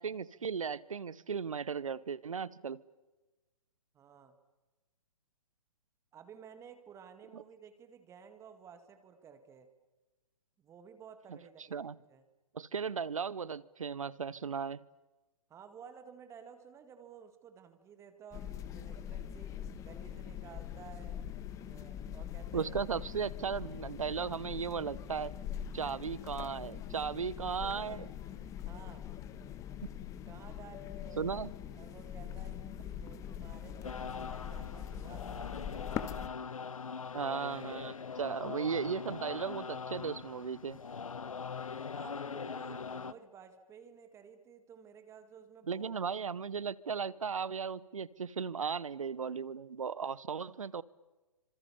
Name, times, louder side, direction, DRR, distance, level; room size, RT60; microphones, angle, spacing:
voice 1, 0.0-2.8 7.3-7.4 11.7-11.9 12.5-14.8 22.5-25.3 25.7-28.1 31.2-31.5 37.1-40.8 45.7-50.8, right 6 dB, 65° right, 1.0 m, -36 dB
voice 2, 3.9-4.4 6.1-9.7 10.6-12.2 15.5-21.2 21.7-22.7 27.5-28.0 28.3-29.1 30.3-36.1 41.9-46.3 47.0-47.1, right 7 dB, 15° right, 1.9 m, -54 dB
sound 1, 18.3-36.3, left 10 dB, 15° left, 1.2 m, -43 dB
sound 2, 33.8-43.1, left 5 dB, 70° left, 1.0 m, -42 dB
28.5 x 26.0 x 7.0 m
figure-of-eight pair, 125°, 18 cm